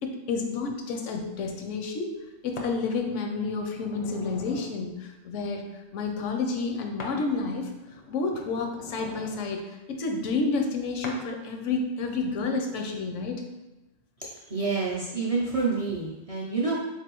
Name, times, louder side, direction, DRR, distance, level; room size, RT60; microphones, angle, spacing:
voice 1, 0.0-2.2 2.4-7.7 8.1-13.4, left 4 dB, 85° left, 4 dB, 0.9 m, -30 dB
sound 1, 2.6-2.8 3.4-4.8 7.0-7.2 7.6-9.5 11.0-11.2 12.0-12.2, left 3 dB, 50° left, 0.5 m, -42 dB
voice 2, 14.2-16.8, right 4 dB, 45° right, -4 dB, 0.4 m, -28 dB
3.7 x 3.3 x 2.9 m, 1.0 s
omnidirectional pair, 1.2 m